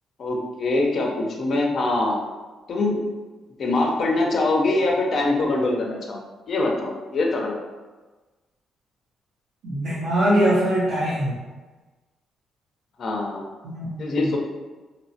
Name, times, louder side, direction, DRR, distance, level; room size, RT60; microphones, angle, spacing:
voice 1, 0.2-2.2 2.7-3.0 3.6-6.2 6.5-7.6 13.0-13.4 14.0-14.4, left 2 dB, 55° left, 0 dB, 0.5 m, -23 dB
voice 2, 9.6-11.3 13.6-14.2, equal, 85° right, -10 dB, 0.7 m, -22 dB
2.9 x 2.0 x 2.6 m, 1.3 s
cardioid pair, 90°, 0 cm